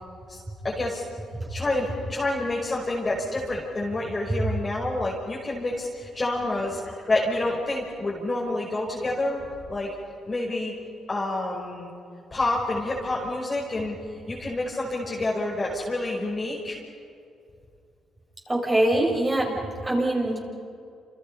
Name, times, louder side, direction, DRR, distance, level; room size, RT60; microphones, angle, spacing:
voice 1, 0.3-1.0 1.5-9.9 10.3-10.7 11.1-11.9 12.3-13.9 14.3-16.8, left 2 dB, 25° left, -4 dB, 5.3 m, -28 dB
voice 2, 18.5-20.4, right 1 dB, 20° right, -2 dB, 7.6 m, -24 dB
29.0 x 29.0 x 5.6 m, 2.5 s
cardioid pair, 90°, 0 cm